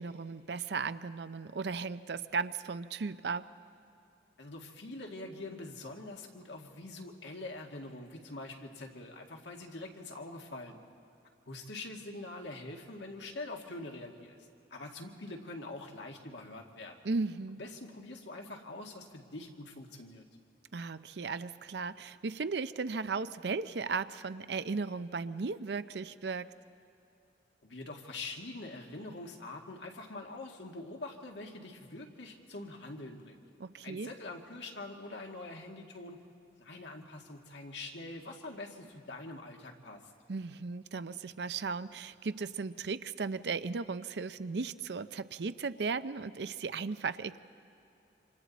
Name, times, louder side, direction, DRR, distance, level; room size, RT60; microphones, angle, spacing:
voice 1, 0.0-3.5 17.0-17.6 20.7-26.5 33.6-34.1 40.3-47.4, right 4 dB, 70° right, 13 dB, 0.6 m, -36 dB
voice 2, 4.4-10.8 11.5-14.4 14.7-17.0 17.6-20.3 27.6-33.4 33.8-36.2 36.6-40.1, left 2 dB, 80° left, 2 dB, 1.9 m, -44 dB
27.5 x 26.5 x 4.1 m, 2.7 s
head